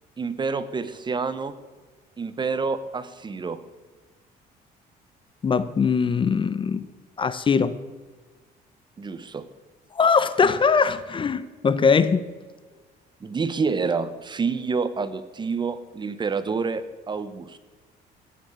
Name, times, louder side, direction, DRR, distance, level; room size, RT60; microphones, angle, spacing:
voice 1, 0.2-1.5 2.2-3.6 9.0-9.5 13.2-17.6, right 4 dB, 25° right, 14 dB, 0.9 m, -28 dB
voice 2, 5.4-6.8 7.2-7.7 9.9-12.2, left 5 dB, 30° left, 14 dB, 0.7 m, -21 dB
14.5 x 7.2 x 8.0 m, 1.4 s
cardioid pair, 110°, 17 cm